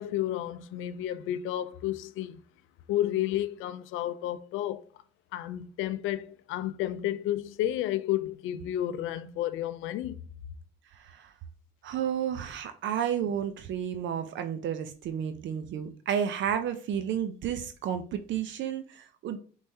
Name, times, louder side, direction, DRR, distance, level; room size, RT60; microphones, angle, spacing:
voice 1, 0.0-2.4 2.9-4.8 5.3-10.2, left 12 dB, 90° left, 0.4 m, -31 dB
voice 2, 10.9-11.3 11.8-19.4, right 9 dB, 70° right, 0.5 m, -32 dB
5.4 x 3.2 x 2.7 m
cardioid pair, 90°, 20 cm